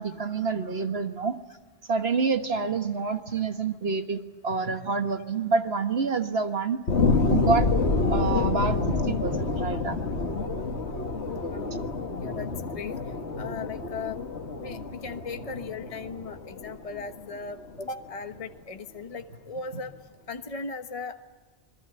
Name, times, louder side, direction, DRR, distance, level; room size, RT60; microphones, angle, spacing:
voice 1, 0.0-1.4 1.9-6.8 7.3-7.7 8.1-10.0 11.4-11.5, right 4 dB, 60° right, 7 dB, 1.7 m, -27 dB
sound 1, 6.9-17.9 18.4-18.5, left 3 dB, 70° left, 1.9 m, -28 dB
voice 2, 11.5-11.9 12.2-13.0 13.4-14.2 14.6-19.9 20.3-21.2, left 4 dB, 30° left, 7 dB, 1.2 m, -37 dB
26.5 x 21.0 x 9.8 m, 1.4 s
omnidirectional pair, 1.2 m